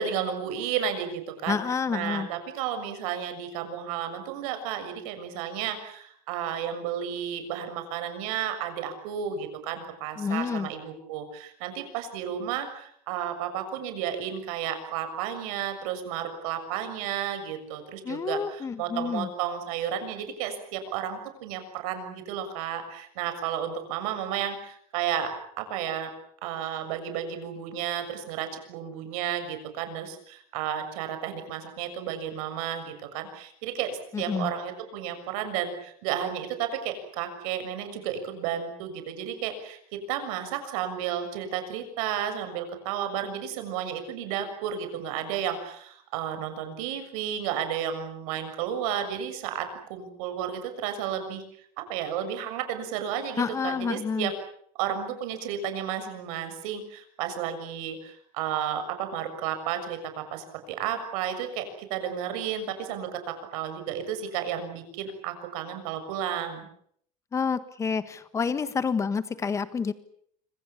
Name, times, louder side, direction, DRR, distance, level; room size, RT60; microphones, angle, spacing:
voice 1, 0.0-1.6 1.9-25.3 25.6-26.1 26.4-51.4 51.8-54.3 54.8-66.7, right 9 dB, 70° right, 8 dB, 6.7 m, -32 dB
voice 2, 1.5-2.3 10.2-10.7 18.0-19.3 34.1-34.5 53.4-54.3 67.3-69.9, left 5 dB, 15° left, 13 dB, 1.5 m, -29 dB
26.0 x 25.0 x 7.3 m, 0.65 s
cardioid pair, 165°, 19 cm